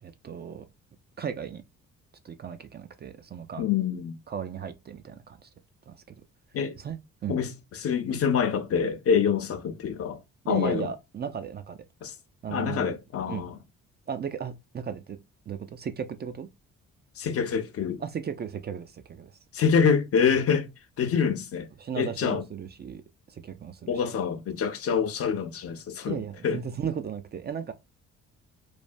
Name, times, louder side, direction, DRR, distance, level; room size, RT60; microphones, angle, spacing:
voice 1, 0.0-0.6 1.2-1.6 2.2-3.6 4.3-5.5 5.9-6.2 6.8-7.4 10.5-11.8 12.4-13.0 13.3-13.4 14.1-15.2 15.5-16.5 18.0-19.3 21.8-23.0 23.3-23.9 26.0-27.7, right 7 dB, 35° right, 0.4 m, -35 dB
voice 2, 3.6-4.2 6.5-6.8 7.3-10.2 10.5-10.9 12.0-12.1 12.5-13.6 17.2-18.0 19.5-20.7 21.0-21.7 22.0-22.4 23.9-26.2 26.4-26.6, left 7 dB, 50° left, 0.6 m, -26 dB
3.3 x 2.1 x 2.5 m
cardioid pair, 90°, 30 cm